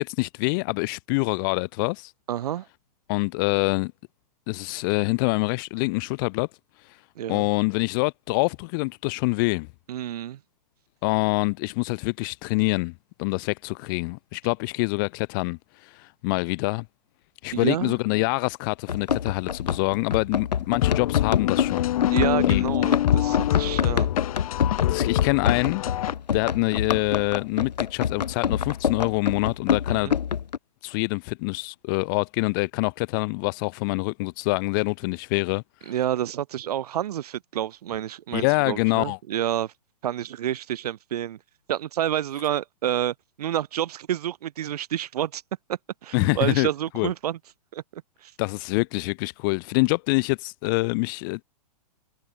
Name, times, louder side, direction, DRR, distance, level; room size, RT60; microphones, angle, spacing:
voice 1, 0.0-2.1 3.1-3.9 4.5-6.5 6.8-7.0 7.3-9.7 11.0-12.9 13.2-16.8 17.4-21.9 22.5-22.6 24.9-25.8 26.3-30.1 30.8-35.9 38.3-39.2 46.1-46.7 46.9-47.1 48.4-51.4, left 29 dB, 30° left, 0.4 m, -25 dB
voice 2, 2.3-2.7 7.2-7.5 9.9-10.4 17.5-18.0 22.0-24.1 29.9-30.1 35.9-39.7 40.0-41.4 41.7-45.4 45.7-47.4 47.7-48.3, right 11 dB, 65° right, 0.8 m, -29 dB
Run, 18.9-30.6, left 8 dB, 85° left, 0.9 m, -27 dB
sound 1, 20.8-26.1, left 13 dB, 55° left, 0.9 m, -25 dB
hypercardioid pair, 130°, 21 cm